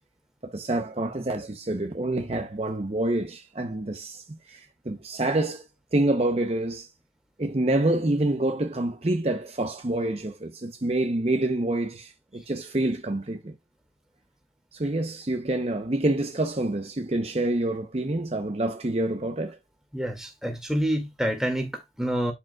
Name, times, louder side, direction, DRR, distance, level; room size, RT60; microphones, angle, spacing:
voice 1, 0.4-5.6 5.9-6.9 7.4-13.5 14.7-19.6, right 1 dB, 35° right, 0.7 m, -27 dB
voice 2, 19.9-22.3, equal, 5° right, 2.0 m, -27 dB
11.5 x 5.0 x 2.3 m
head